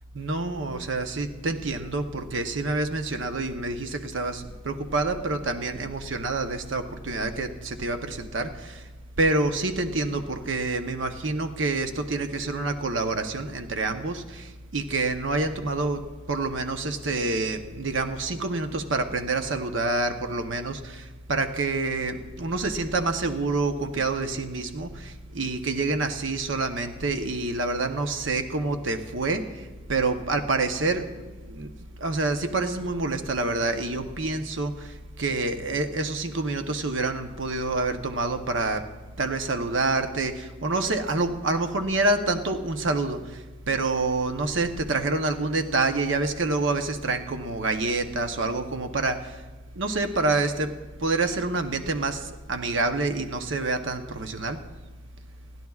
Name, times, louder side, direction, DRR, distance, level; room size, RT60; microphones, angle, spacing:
voice 1, 0.1-8.8 9.2-16.0 16.3-31.7 32.0-38.8 39.2-49.4 49.7-50.7 51.0-54.6, right 3 dB, 70° right, 7 dB, 0.8 m, -27 dB
28.5 x 11.0 x 2.4 m, 1.3 s
head